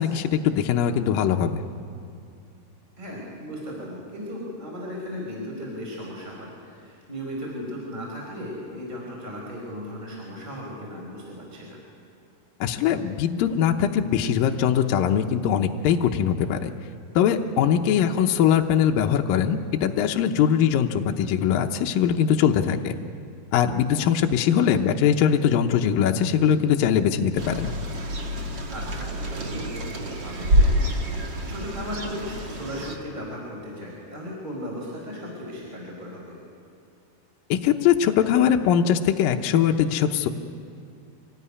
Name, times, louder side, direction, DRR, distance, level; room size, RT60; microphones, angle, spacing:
voice 1, 0.0-1.6 12.6-16.7 17.2-22.9 23.5-27.7 37.5-40.3, left 8 dB, 75° left, 4 dB, 2.3 m, -21 dB
voice 2, 3.0-11.8 17.7-18.0 28.7-36.4, equal, 10° right, -2 dB, 4.6 m, -36 dB
sound 1, 27.4-33.0, equal, 40° right, 1.8 m, -26 dB
25.5 x 19.0 x 9.8 m, 2.6 s
omnidirectional pair, 4.7 m